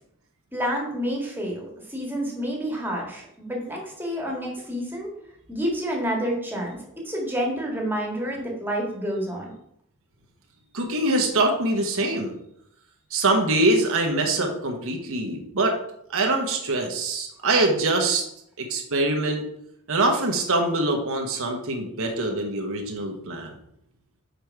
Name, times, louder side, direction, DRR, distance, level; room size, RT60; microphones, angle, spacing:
voice 1, 0.5-5.1 5.5-6.8 7.0-9.5, equal, 10° right, -1 dB, 1.8 m, -29 dB
voice 2, 10.7-12.3 13.1-15.8 16.1-18.2 18.6-19.4 19.9-23.5, right 2 dB, 65° right, 2 dB, 1.2 m, -24 dB
6.8 x 5.1 x 4.6 m, 0.74 s
head